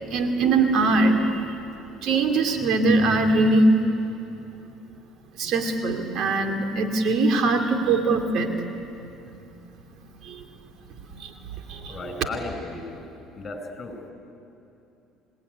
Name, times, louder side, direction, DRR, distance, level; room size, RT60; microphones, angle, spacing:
voice 1, 0.0-1.6 2.0-3.6 5.4-8.5 10.2-10.4 11.1-11.3 11.7-12.3, right 3 dB, 60° right, 5 dB, 2.9 m, -22 dB
voice 2, 11.9-13.0 13.3-14.0, left 3 dB, 35° left, 5 dB, 5.9 m, -35 dB
27.5 x 19.5 x 9.7 m, 2.8 s
supercardioid pair, 95°, 0 cm